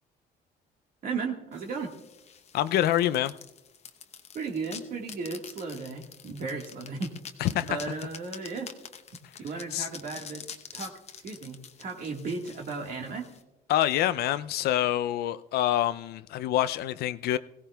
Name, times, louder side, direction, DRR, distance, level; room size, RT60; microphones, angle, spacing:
voice 1, 1.0-1.9 4.3-7.1 7.5-8.7 9.4-10.4 10.7-10.9 11.2-13.3, right 4 dB, 55° right, 1.6 m, -35 dB
sound 1, 1.5-13.4, left 7 dB, 40° left, 0.8 m, -47 dB
voice 2, 2.5-3.3 7.4-7.8 9.7-9.9 13.7-17.4, left 12 dB, 70° left, 0.4 m, -26 dB
20.5 x 16.0 x 2.3 m
cardioid pair, 110°, 17 cm